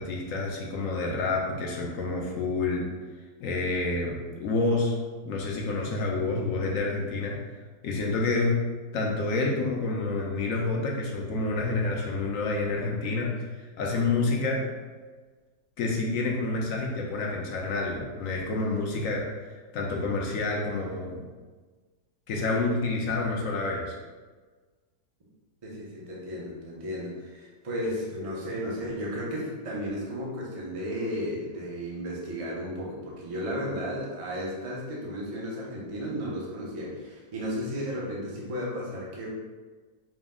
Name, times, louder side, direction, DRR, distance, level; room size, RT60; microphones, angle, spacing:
voice 1, 0.0-2.9 3.4-5.0 5.2-7.4 7.8-8.6 8.9-13.3 13.6-14.6 15.8-19.3 19.7-21.2 22.3-24.0, left 3 dB, 65° left, -1 dB, 0.8 m, -28 dB
voice 2, 25.6-39.3, equal, 45° right, -4 dB, 0.4 m, -34 dB
5.0 x 2.0 x 3.6 m, 1.4 s
omnidirectional pair, 1.9 m